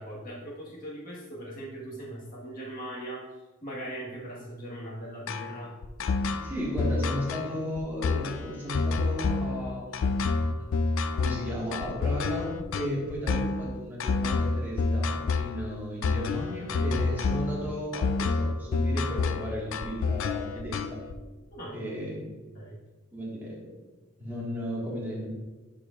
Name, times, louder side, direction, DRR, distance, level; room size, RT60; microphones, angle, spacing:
voice 1, 0.0-5.7 21.5-21.8 22.5-22.8, right 1 dB, 40° left, -4 dB, 1.6 m, -40 dB
sound 1, 5.3-21.1, left 4 dB, 60° left, 0.4 m, -28 dB
voice 2, 6.4-21.0 21.7-22.2 23.1-23.7 24.2-25.3, equal, 10° right, -6 dB, 1.7 m, -35 dB
10.5 x 4.7 x 2.5 m, 1.2 s
head